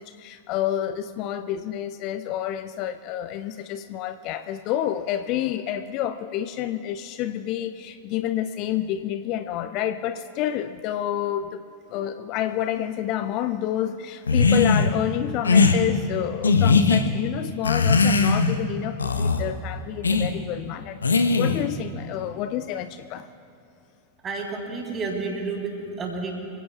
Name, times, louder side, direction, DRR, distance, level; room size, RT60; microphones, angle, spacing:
voice 1, 0.0-11.6 11.9-23.3, left 11 dB, 40° left, 11 dB, 0.5 m, -29 dB
sound 1, 14.3-14.9 15.4-15.8 16.4-17.0 17.6-18.6 19.0-19.4 20.0-20.3 21.0-21.7, left 4 dB, 75° left, 0.9 m, -19 dB
voice 2, 24.2-26.3, right 3 dB, 20° right, 0 dB, 3.7 m, -30 dB
27.0 x 16.5 x 2.4 m, 2.7 s
figure-of-eight pair, 90°, 0 cm